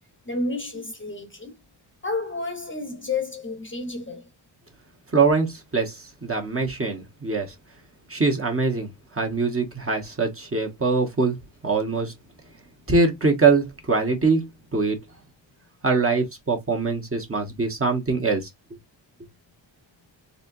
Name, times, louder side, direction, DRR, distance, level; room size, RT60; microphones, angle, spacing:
voice 1, 0.2-1.5 2.0-4.3, left 3 dB, 25° left, 0.9 m, -30 dB
voice 2, 5.1-7.5 8.1-11.4 11.6-12.1 12.9-15.0 15.8-18.5, right 4 dB, 30° right, 1.2 m, -23 dB
4.2 x 2.8 x 2.6 m
wide cardioid pair, 105°, 47 cm